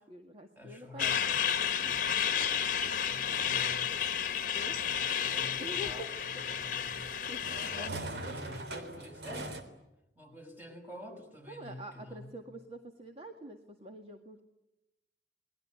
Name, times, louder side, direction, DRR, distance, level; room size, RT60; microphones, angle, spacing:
voice 1, 0.0-1.2 4.4-4.8 5.6-6.1 7.3-8.4 11.5-14.4, equal, 35° right, 4 dB, 2.1 m, -46 dB
voice 2, 0.5-4.0 4.6-7.2 7.7-9.7 10.1-12.4, left 1 dB, 10° right, 4 dB, 6.7 m, -48 dB
Truck, 1.0-7.9, left 8 dB, 50° left, 1.3 m, -32 dB
sound 1, 2.8-9.6, right 1 dB, 65° right, 3.5 m, -45 dB
29.5 x 21.0 x 9.7 m, 0.93 s
head